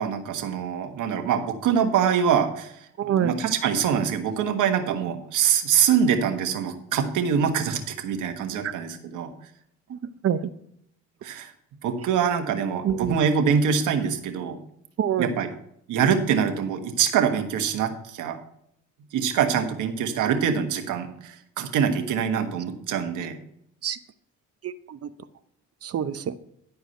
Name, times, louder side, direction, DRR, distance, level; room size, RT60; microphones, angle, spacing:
voice 1, 0.0-2.7 3.1-9.3 11.2-11.5 11.8-14.6 15.2-15.5 15.9-18.4 19.1-23.4, right 7 dB, 85° right, 1.4 m, -24 dB
voice 2, 3.0-3.3 8.6-8.7 9.9-10.5 12.8-13.3 15.0-15.3 22.4-22.5 23.8-24.0 24.6-25.1 25.8-26.3, right 9 dB, 50° right, 0.8 m, -27 dB
11.0 x 4.8 x 6.6 m
cardioid pair, 90°, 30 cm